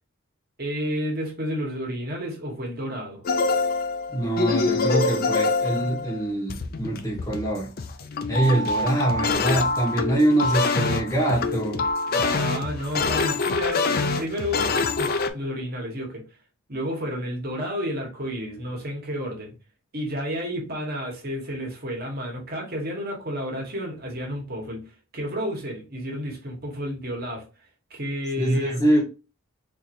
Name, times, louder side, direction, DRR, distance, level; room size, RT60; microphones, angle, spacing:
voice 1, 0.6-3.2 12.1-14.7 15.0-16.2 16.7-19.5 19.9-27.4 27.9-28.8, equal, 45° right, 1.3 m, -31 dB
sound 1, 3.2-15.3, left 3 dB, 45° left, 0.4 m, -25 dB
voice 2, 4.1-7.7 8.0-11.8 28.4-29.0, right 1 dB, 15° left, 0.8 m, -24 dB
4.0 x 2.9 x 2.6 m
head